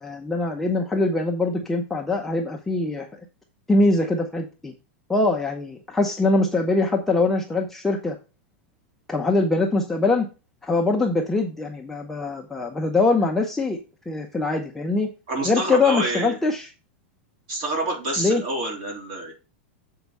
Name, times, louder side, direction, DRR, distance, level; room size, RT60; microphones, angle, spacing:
voice 1, 0.0-3.1 3.7-4.7 5.1-8.2 9.1-10.3 10.6-13.8 14.1-15.1 15.4-16.7 18.2-18.4, left 2 dB, 5° left, 0 dB, 0.5 m, -23 dB
voice 2, 15.3-16.4 17.5-19.3, right 2 dB, 40° right, 0 dB, 3.5 m, -27 dB
7.1 x 4.6 x 5.3 m, 0.31 s
supercardioid pair, 175°, 7 cm